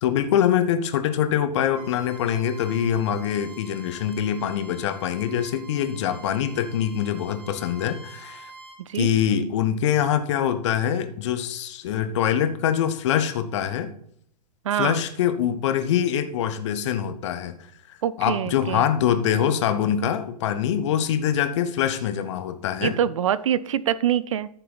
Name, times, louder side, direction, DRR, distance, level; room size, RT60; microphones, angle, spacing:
voice 1, 0.0-8.5 8.9-13.9 14.7-17.7 18.2-23.0, left 9 dB, 45° left, 10 dB, 1.1 m, -24 dB
Bowed string instrument, 1.7-8.8, right 3 dB, 30° right, 3.6 m, -46 dB
voice 2, 14.6-15.0 18.0-18.9 22.8-24.5, right 10 dB, 50° right, 19 dB, 0.5 m, -24 dB
14.0 x 6.8 x 4.0 m, 0.67 s
figure-of-eight pair, 105°, 21 cm